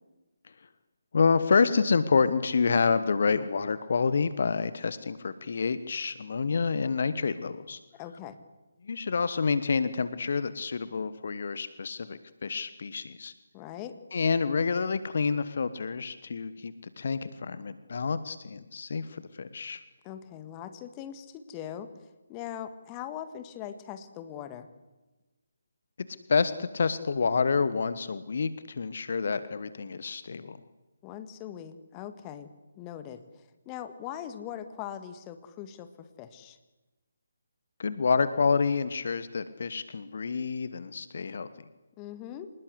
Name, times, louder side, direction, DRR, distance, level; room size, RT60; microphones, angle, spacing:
voice 1, 1.1-7.8 8.8-13.3 14.1-19.8 26.3-30.6 37.8-41.5, left 5 dB, 50° left, 14 dB, 1.2 m, -28 dB
voice 2, 7.9-8.4 13.5-14.0 20.0-21.9 22.3-24.7 31.0-32.5 32.8-36.6 42.0-42.5, left 10 dB, 20° left, 10 dB, 1.7 m, -41 dB
26.0 x 20.0 x 8.1 m, 1.1 s
figure-of-eight pair, 145°, 0 cm